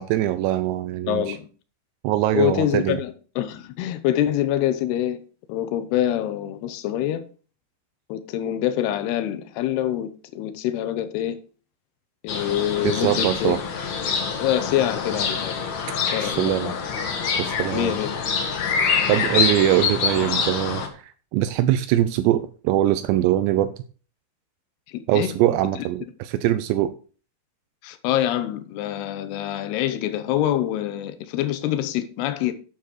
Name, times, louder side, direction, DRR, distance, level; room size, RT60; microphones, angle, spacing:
voice 1, 0.0-1.4 2.0-3.0 12.8-13.6 16.2-16.7 17.4-18.0 19.1-23.7 25.1-27.0, right 13 dB, 85° right, 2.5 m, -22 dB
voice 2, 1.1-1.5 2.3-5.2 5.5-7.2 8.1-11.4 12.2-13.6 14.4-15.6 16.1-16.8 17.7-18.3 24.9-25.3 27.8-32.5, left 12 dB, 80° left, 2.4 m, -25 dB
sound 1, 12.3-20.9, left 6 dB, 65° left, 1.8 m, -25 dB
9.4 x 7.5 x 4.8 m
omnidirectional pair, 5.7 m